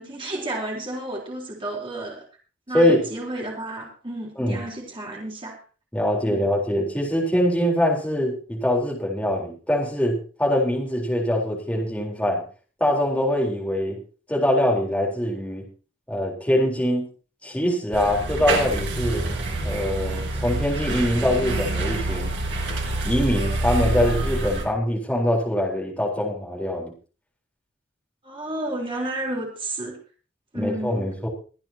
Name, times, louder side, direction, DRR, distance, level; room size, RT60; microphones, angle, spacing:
voice 1, 0.0-2.2 2.7-5.6 6.2-6.4 28.2-30.0 30.5-31.1, right 1 dB, 30° right, -2 dB, 3.8 m, -31 dB
voice 2, 5.9-12.4 12.8-14.0 14.3-15.6 16.1-17.1 17.4-19.2 19.6-22.3 23.0-26.9 30.5-31.3, left 1 dB, 5° left, -2 dB, 4.0 m, -23 dB
sound 1, 17.9-24.6, right 2 dB, 65° right, 4.3 m, -27 dB
24.0 x 9.7 x 2.9 m, 0.37 s
head